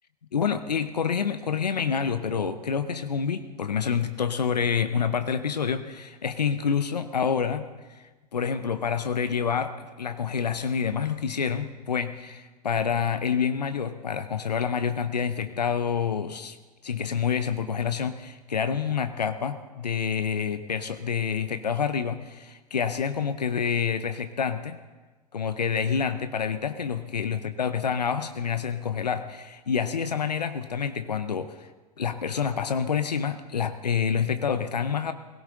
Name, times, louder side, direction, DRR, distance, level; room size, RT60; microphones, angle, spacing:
voice 1, 0.3-8.0 8.3-16.6 16.8-24.8 25.3-31.7 32.0-35.1, left 7 dB, 90° left, 11 dB, 0.8 m, -28 dB
20.0 x 17.5 x 3.8 m, 1.3 s
hypercardioid pair, 85°, 20 cm